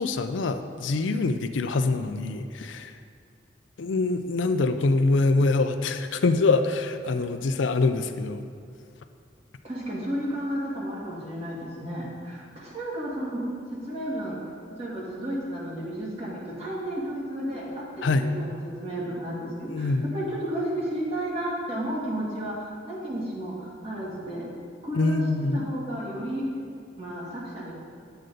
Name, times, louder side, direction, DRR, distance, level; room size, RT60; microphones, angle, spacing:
voice 1, 0.0-3.0 3.8-8.5 18.0-18.3 19.7-20.1 24.9-25.7, left 3 dB, 85° left, 8 dB, 0.5 m, -24 dB
voice 2, 9.6-13.5 13.9-14.4 14.8-24.5 24.8-25.2 25.5-26.5 27.0-27.7, right 1 dB, 35° right, -6 dB, 2.1 m, -32 dB
9.2 x 7.8 x 3.9 m, 2.3 s
head